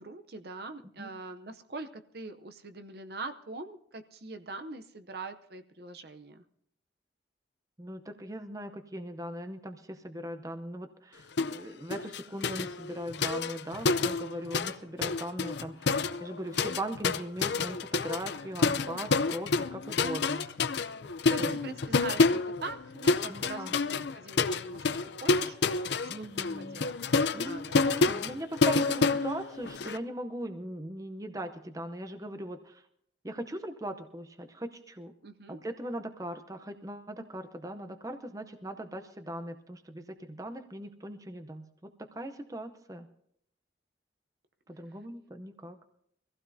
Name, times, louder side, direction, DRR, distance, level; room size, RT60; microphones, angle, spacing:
voice 1, 0.0-6.4 21.3-26.3 26.6-27.8 35.2-35.6, right 3 dB, 55° right, 8 dB, 0.7 m, -43 dB
voice 2, 7.8-20.5 21.4-21.5 23.3-23.7 26.0-26.8 27.3-32.8 33.2-35.1 35.5-43.1 44.7-45.8, right 1 dB, 20° right, 8 dB, 0.7 m, -39 dB
sound 1, 11.4-11.6 11.9-14.8 15.0-30.0, left 4 dB, 70° left, 0.5 m, -29 dB
24.0 x 15.5 x 2.7 m, 0.70 s
head